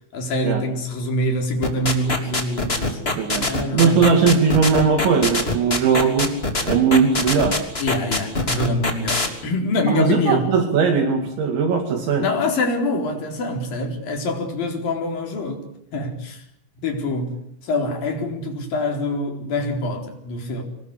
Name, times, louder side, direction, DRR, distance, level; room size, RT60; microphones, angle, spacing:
voice 1, 0.1-4.2 7.8-10.5 12.2-15.7 15.9-16.4 16.8-17.3 17.6-20.6, left 2 dB, 45° left, 5.4 m, -25 dB
sound 1, 1.6-9.3, left 2 dB, 15° left, 2.2 m, -23 dB
voice 2, 3.2-3.5 3.7-6.3 6.7-7.6 9.9-12.3, right 5 dB, 65° right, 4.5 m, -19 dB
25.5 x 20.5 x 8.3 m
omnidirectional pair, 5.8 m